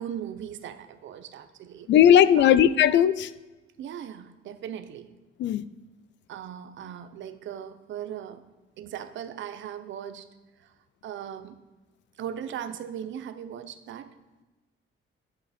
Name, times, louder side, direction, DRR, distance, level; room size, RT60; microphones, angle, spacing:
voice 1, 0.0-1.9 2.4-2.6 3.8-5.1 6.3-8.4 8.8-10.3 10.6-10.7 11.0-11.6 12.2-14.1, right 9 dB, 65° right, 0.7 m, -38 dB
voice 2, 1.9-3.3 5.4-5.7, left 10 dB, 60° left, 0.4 m, -18 dB
11.0 x 8.0 x 4.2 m
cardioid pair, 170°, 21 cm